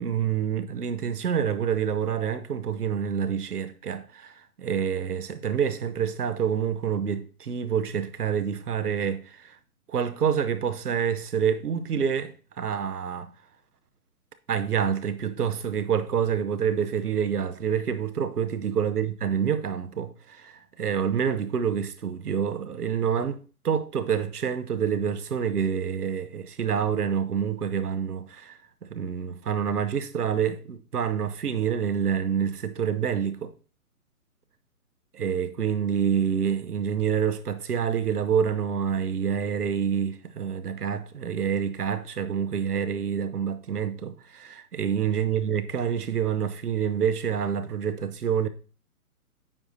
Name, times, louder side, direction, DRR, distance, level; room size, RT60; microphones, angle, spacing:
voice 1, 0.0-9.6 9.9-13.3 14.5-33.5 35.1-48.5, right 7 dB, 85° right, 1.0 m, -27 dB
9.0 x 4.8 x 2.7 m
hypercardioid pair, 145°, 45 cm